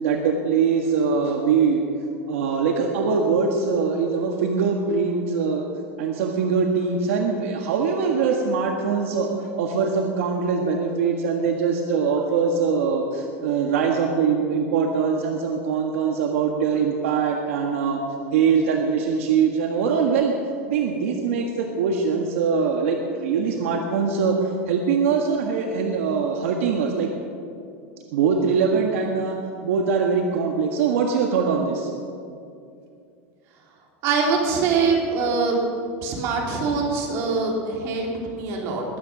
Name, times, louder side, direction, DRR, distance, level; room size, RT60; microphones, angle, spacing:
voice 1, 0.0-1.8 2.3-5.6 6.0-18.0 18.3-20.3 20.7-27.1 28.1-29.4 29.6-31.9, right 5 dB, 75° right, 2 dB, 1.6 m, -22 dB
voice 2, 34.0-35.6 36.0-38.8, right 4 dB, 40° right, 0 dB, 3.1 m, -23 dB
21.5 x 9.1 x 6.1 m, 2.5 s
supercardioid pair, 160°, 7 cm